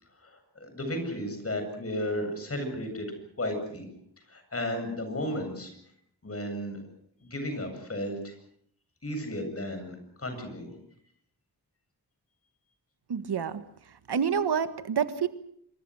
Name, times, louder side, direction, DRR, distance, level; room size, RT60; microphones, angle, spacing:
voice 1, 0.2-3.1 3.4-3.9 4.3-5.7 6.2-6.8 7.2-8.3 9.0-10.7, left 1 dB, 35° left, 6 dB, 7.9 m, -34 dB
voice 2, 13.1-15.3, right 7 dB, 85° right, 11 dB, 1.7 m, -29 dB
27.0 x 23.5 x 6.4 m, 0.66 s
wide cardioid pair, 135°, 39 cm